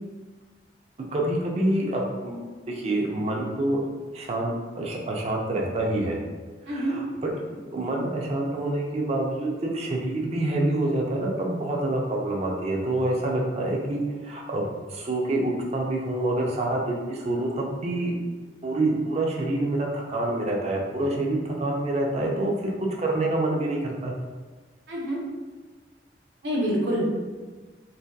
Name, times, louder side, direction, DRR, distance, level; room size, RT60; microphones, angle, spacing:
voice 1, 1.1-2.4 2.7-3.8 4.1-6.2 6.7-7.3 7.7-18.2 18.6-24.1, right 1 dB, 35° right, -1 dB, 0.4 m, -27 dB
voice 2, 6.7-7.0 24.9-25.2 26.4-27.1, equal, 75° right, -4 dB, 0.7 m, -26 dB
2.7 x 2.2 x 2.2 m, 1.4 s
head